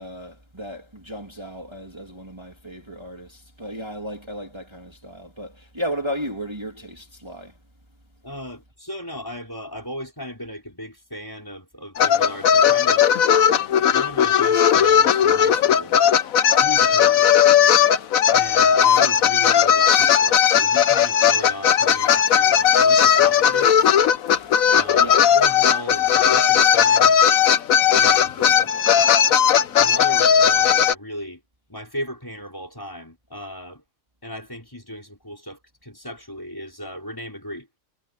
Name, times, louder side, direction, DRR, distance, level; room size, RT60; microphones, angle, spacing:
voice 1, 0.0-7.5 24.3-24.5 25.0-25.2, equal, 20° right, 3.4 m, -34 dB
voice 2, 8.2-13.0 13.9-16.0 16.6-17.4 18.3-24.0 24.7-27.1 27.9-28.7 29.8-31.4 31.7-33.8 34.2-37.7, equal, 15° left, 5.3 m, -36 dB
sound 1, 12.0-30.9, left 8 dB, 85° left, 1.3 m, -17 dB
omnidirectional pair, 1.4 m